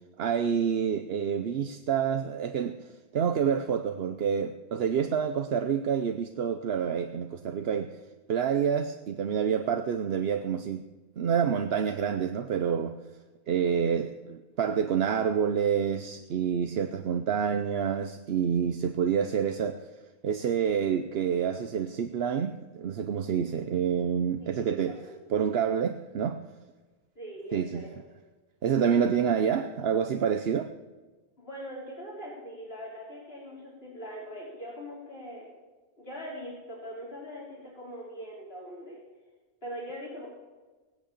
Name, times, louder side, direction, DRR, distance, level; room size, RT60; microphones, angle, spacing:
voice 1, 0.2-2.8 3.1-7.9 8.3-10.8 11.2-13.0 13.5-19.8 20.2-25.0 25.3-26.4 27.5-27.8 28.6-30.7, right 7 dB, 75° right, 1.0 m, -28 dB
voice 2, 24.4-25.1 27.2-27.9 29.4-29.5 31.4-35.5 36.0-39.0 39.6-40.3, equal, 70° left, 4.3 m, -42 dB
18.5 x 8.6 x 8.5 m
omnidirectional pair, 1.1 m